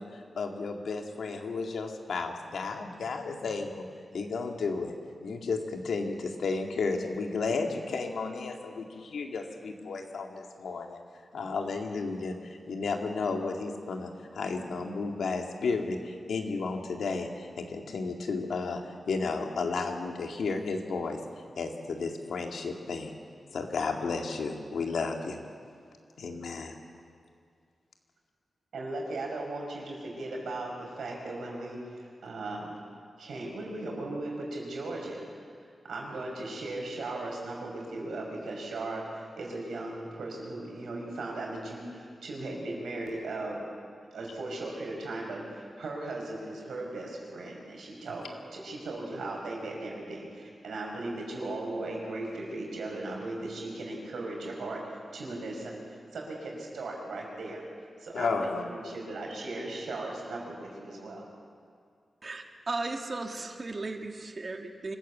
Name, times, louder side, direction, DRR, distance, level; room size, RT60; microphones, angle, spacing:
voice 1, 0.0-3.9 4.1-4.9 5.2-11.0 11.3-18.8 19.1-21.2 21.6-23.2 23.5-25.4 26.2-26.8 58.1-58.6, left 4 dB, 90° left, 3 dB, 2.1 m, -33 dB
voice 2, 28.7-32.7 33.2-35.2 35.8-43.6 44.1-57.6 58.0-61.3, right 2 dB, 90° right, -1 dB, 5.5 m, -37 dB
voice 3, 62.2-65.0, right 3 dB, 45° right, 3 dB, 2.0 m, -36 dB
25.5 x 14.5 x 8.4 m, 2.2 s
cardioid pair, 65°, 0 cm